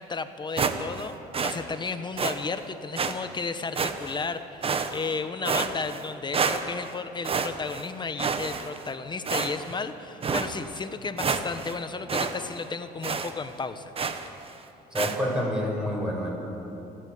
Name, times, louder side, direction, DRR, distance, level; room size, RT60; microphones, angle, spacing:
voice 1, 0.0-13.9, left 4 dB, 25° left, 10 dB, 1.1 m, -33 dB
sound 1, 0.6-1.1 1.3-1.6 2.2-2.4 3.0-3.1 3.8-4.2 4.6-5.1 5.5-6.1 6.3-6.9 7.2-7.9 8.2-8.9 9.3-9.8 10.2-10.5 10.9-11.0 11.2-11.8 12.1-12.3 12.6-12.7 13.0-13.3 14.0-14.3 15.0-15.2, right 5 dB, 35° right, 1.4 m, -28 dB
voice 2, 14.9-16.3, equal, 5° right, -3 dB, 6.9 m, -28 dB
27.5 x 12.5 x 8.7 m, 2.9 s
cardioid pair, 110°, 17 cm